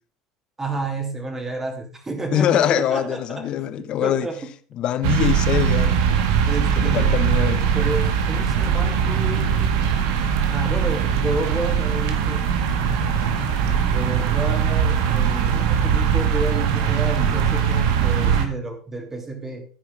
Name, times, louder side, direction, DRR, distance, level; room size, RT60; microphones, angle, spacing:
voice 1, 0.6-3.5 3.8-4.4 6.4-9.7 10.5-12.4 13.9-19.6, right 2 dB, 15° right, 2.7 m, -30 dB
voice 2, 2.3-4.3 4.8-6.4 6.8-7.7, left 10 dB, 50° left, 1.0 m, -23 dB
sound 1, 5.0-18.4, right 7 dB, 85° right, 1.7 m, -21 dB
14.5 x 5.0 x 5.2 m
supercardioid pair, 125°, 2 cm